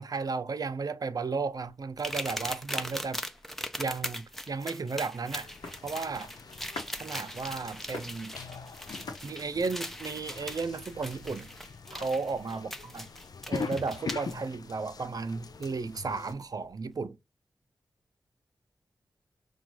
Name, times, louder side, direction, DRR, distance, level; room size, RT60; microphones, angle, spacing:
voice 1, 0.0-3.2 3.8-5.5 5.8-6.3 7.0-8.4 9.2-11.5 11.9-13.1 13.5-17.2, right 4 dB, 55° right, 0.6 m, -34 dB
sound 1, 2.0-14.3 15.6-15.7 16.3-16.4, equal, 5° left, 0.5 m, -40 dB
sound 2, 2.8-10.9, left 3 dB, 85° left, 1.1 m, -50 dB
sound 3, 5.3-16.3, left 5 dB, 60° left, 0.4 m, -43 dB
5.9 x 2.3 x 3.0 m
cardioid pair, 50°, 7 cm